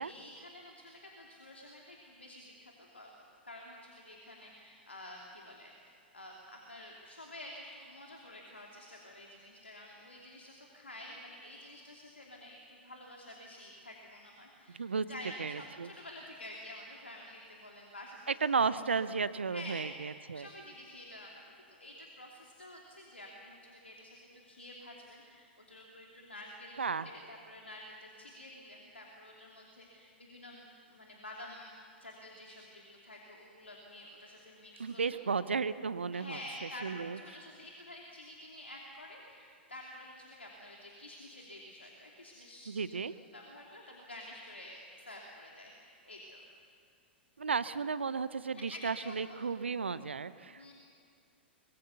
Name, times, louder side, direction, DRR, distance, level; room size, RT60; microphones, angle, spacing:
voice 1, 0.0-3.1 3.4-6.3 6.7-18.2 19.5-20.0 20.3-21.4 21.7-31.7 32.0-35.2 36.1-43.0 43.3-46.4 48.5-49.4 50.6-50.7, left 1 dB, 85° left, -1 dB, 2.7 m, -49 dB
voice 2, 14.7-15.1 15.4-15.9 18.4-20.5 26.8-27.1 34.8-36.4 36.8-37.2 42.7-43.1 47.4-50.7, right 5 dB, 75° right, 15 dB, 0.7 m, -34 dB
24.0 x 22.0 x 6.9 m, 2.4 s
figure-of-eight pair, 105°, 6 cm